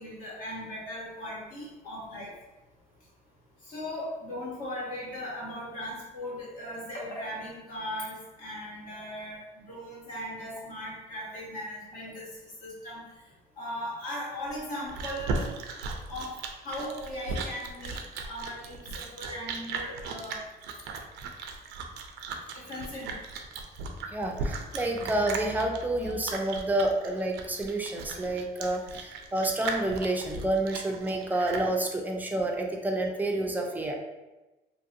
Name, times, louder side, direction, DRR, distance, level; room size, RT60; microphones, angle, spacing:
voice 1, 0.0-2.4 3.6-12.3 12.6-13.1 13.6-15.5 16.1-20.4 22.5-23.2 25.9-26.1, left 1 dB, 55° left, -5 dB, 1.3 m, -38 dB
Chewing mastication, 14.5-31.7, right 4 dB, 85° right, 0.4 m, -37 dB
voice 2, 24.1-33.9, right 1 dB, 10° right, 1 dB, 0.4 m, -29 dB
2.7 x 2.6 x 2.6 m, 1.1 s
cardioid pair, 110°, 17 cm